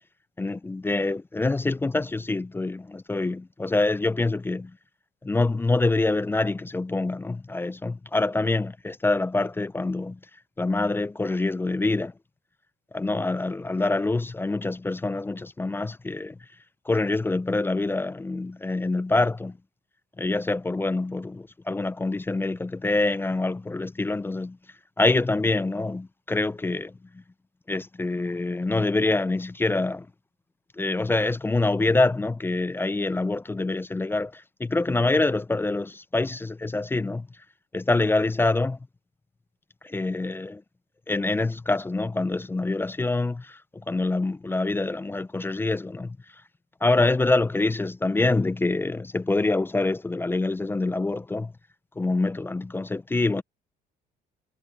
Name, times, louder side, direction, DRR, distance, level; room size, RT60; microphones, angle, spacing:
voice 1, 0.4-4.7 5.2-10.2 10.6-12.1 12.9-16.4 16.9-19.6 20.2-24.6 25.0-27.0 27.7-30.1 30.8-37.3 37.7-38.8 39.8-40.6 41.1-46.2 46.8-51.5 52.0-53.4, left 2 dB, 15° left, 0.5 m, -25 dB
cardioid pair, 110°, 17 cm